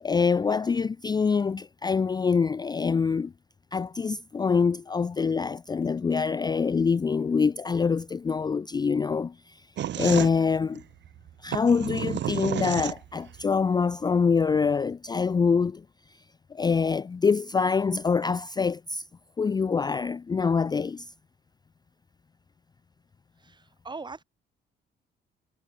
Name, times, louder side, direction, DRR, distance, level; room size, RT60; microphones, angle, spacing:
voice 1, 0.0-3.3 3.7-9.6 10.0-10.8 11.4-15.8 16.5-19.0 19.4-21.1, left 5 dB, 20° left, 0.4 m, -25 dB
sound 1, 9.8-13.4, right 11 dB, 65° right, 1.0 m, -31 dB
voice 2, 23.4-24.2, right 4 dB, 20° right, 1.3 m, -40 dB
cardioid pair, 90°, 20 cm